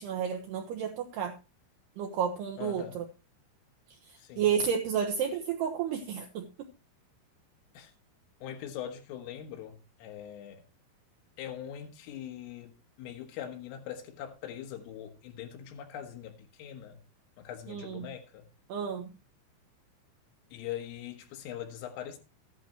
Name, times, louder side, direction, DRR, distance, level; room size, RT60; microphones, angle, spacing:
voice 1, 0.0-1.3 2.0-3.0 4.1-6.7 17.7-18.1 18.7-19.1, right 7 dB, 70° right, 2.7 m, -31 dB
voice 2, 2.6-3.0 4.2-4.5 7.7-7.9 8.4-10.6 11.4-17.0 17.4-18.5 20.5-22.2, left 10 dB, 80° left, 3.9 m, -42 dB
14.0 x 11.0 x 3.0 m
omnidirectional pair, 5.8 m